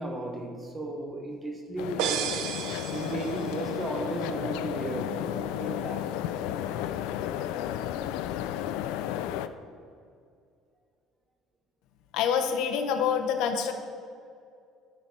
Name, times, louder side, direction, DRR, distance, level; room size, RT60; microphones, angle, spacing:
voice 1, 0.0-2.4 2.9-6.2, right 2 dB, 20° right, 3 dB, 0.9 m, -35 dB
sound 1, 1.8-9.5, left 11 dB, 90° left, 0.3 m, -33 dB
sound 2, 2.0-3.8, right 8 dB, 75° right, 0.6 m, -32 dB
voice 2, 12.1-13.7, left 7 dB, 70° left, 6 dB, 0.7 m, -26 dB
11.5 x 4.6 x 4.2 m, 2.3 s
cardioid pair, 160°, 0 cm